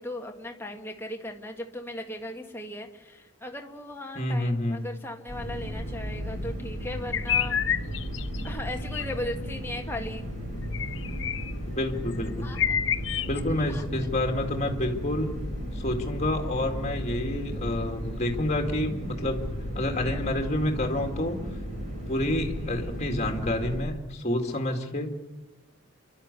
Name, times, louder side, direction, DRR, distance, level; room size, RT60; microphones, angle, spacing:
voice 1, 0.0-7.6 8.4-10.3 12.4-12.6 13.7-13.8, left 1 dB, 10° left, 2 dB, 1.8 m, -37 dB
voice 2, 4.2-4.9 10.5-10.7 11.7-12.5 13.3-15.4 15.7-19.4 19.7-21.6 22.1-25.2, left 1 dB, 30° left, 3 dB, 2.3 m, -29 dB
sound 1, 5.3-23.8, equal, 35° right, 7.5 m, -34 dB
sound 2, 7.1-8.5 8.9-9.1 10.7-11.5 12.1-12.2 12.5-13.4, left 9 dB, 60° left, 0.7 m, -28 dB
29.0 x 12.0 x 8.3 m, 1.1 s
head